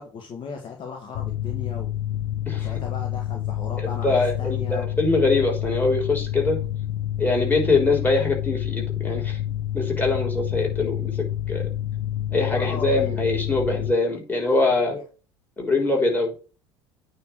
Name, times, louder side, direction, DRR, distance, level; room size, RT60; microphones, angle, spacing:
voice 1, 0.0-1.9 2.5-5.0 12.4-13.2 14.9-15.0, left 5 dB, 35° left, 1 dB, 1.7 m, -36 dB
Mechanical fan, 1.1-13.9, left 12 dB, 55° left, 0.6 m, -28 dB
voice 2, 3.8-6.6 7.2-9.4 9.7-11.7 12.3-14.9 15.6-16.3, left 3 dB, 15° left, -1 dB, 3.7 m, -23 dB
9.0 x 3.1 x 6.3 m, 0.35 s
figure-of-eight pair, 65°, 14 cm